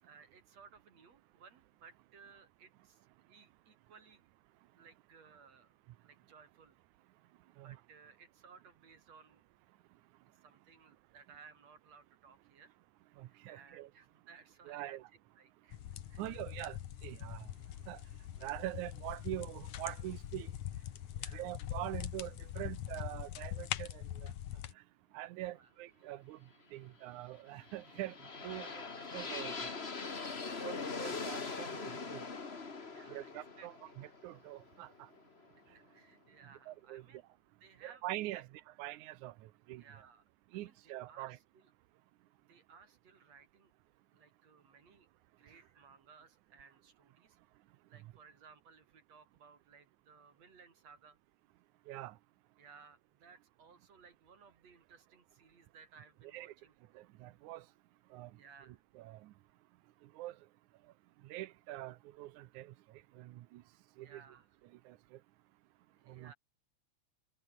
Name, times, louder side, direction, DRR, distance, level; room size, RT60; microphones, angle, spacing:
voice 1, 0.0-4.3 4.7-6.8 7.6-9.4 10.4-12.7 13.2-15.0 15.4-15.8 16.1-16.2 16.6-16.7 21.1-21.5 25.4-25.7 28.5-28.7 30.4-30.7 32.9-33.9 35.7-37.2 37.6-38.0 38.3-38.4 39.8-40.2 40.5-41.7 42.5-45.1 45.4-47.4 47.9-51.2 52.6-56.7 58.3-58.8 64.0-64.5 65.9-66.4, right 5 dB, 60° right, 5.5 m, -60 dB
voice 2, 13.2-13.9 14.7-15.1 16.2-16.8 17.0-17.5 17.9-18.0 18.4-20.5 21.3-24.3 25.1-26.4 26.7-28.2 28.4-28.8 29.1-29.7 30.6-32.2 33.1-34.9 36.7-37.0 37.8-38.5 38.8-39.3 39.7-39.8 40.5-41.4 51.9-52.1 56.3-56.5 57.0-57.6 58.1-58.3 58.7-59.3 60.2-60.3 61.2-62.7 63.2-63.6 64.0-64.2 64.9-65.0 66.1-66.3, right 16 dB, 90° right, 2.3 m, -44 dB
sound 1, 15.7-24.7, left 12 dB, 75° left, 2.5 m, -43 dB
sound 2, 27.5-35.5, left 4 dB, 25° left, 1.6 m, -42 dB
omnidirectional pair, 3.3 m